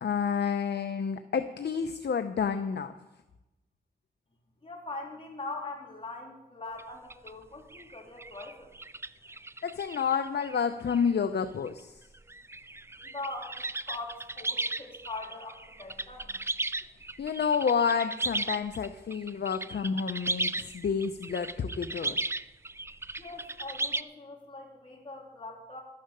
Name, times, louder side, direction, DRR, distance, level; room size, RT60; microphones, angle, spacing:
voice 1, 0.0-2.9 9.6-12.0 17.2-22.2, left 6 dB, 60° left, 9 dB, 0.7 m, -29 dB
voice 2, 4.6-8.7 13.1-16.3 23.2-25.8, left 2 dB, 30° left, -2 dB, 3.5 m, -42 dB
sound 1, 6.8-6.9 7.1-7.3 7.7-10.6 10.9-11.1 11.7-11.8 12.1-24.0, right 2 dB, 15° right, 0.4 m, -36 dB
12.5 x 10.0 x 6.8 m, 1.0 s
wide cardioid pair, 95°, 19 cm